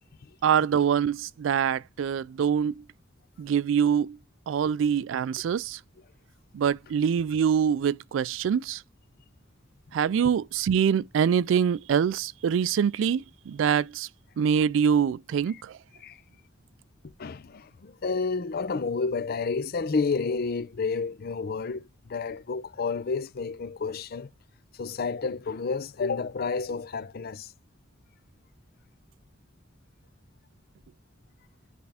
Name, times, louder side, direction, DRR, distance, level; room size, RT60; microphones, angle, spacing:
voice 1, 0.4-2.8 3.4-4.2 4.5-5.8 6.5-8.8 9.9-14.1 14.4-15.7, right 7 dB, 75° right, 0.3 m, -24 dB
voice 2, 17.2-24.3 24.8-27.5, left 4 dB, 50° left, 0.5 m, -30 dB
10.0 x 3.5 x 3.4 m
head